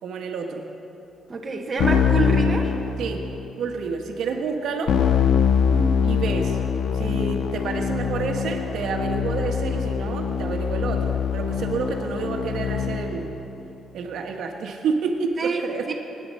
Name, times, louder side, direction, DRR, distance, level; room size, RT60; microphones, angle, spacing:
voice 1, 0.0-0.7 3.0-3.3 3.6-5.0 6.0-6.6 6.9-13.3 13.9-15.9, right 5 dB, 75° right, 3 dB, 1.5 m, -29 dB
voice 2, 1.3-2.7 5.7-5.9 15.4-15.6 15.9-16.0, right 4 dB, 30° right, 1 dB, 1.4 m, -26 dB
Keyboard (musical), 1.8-3.5 4.9-13.3, left 7 dB, 70° left, 0.7 m, -23 dB
24.0 x 9.7 x 5.6 m, 2.9 s
cardioid pair, 150°, 0 cm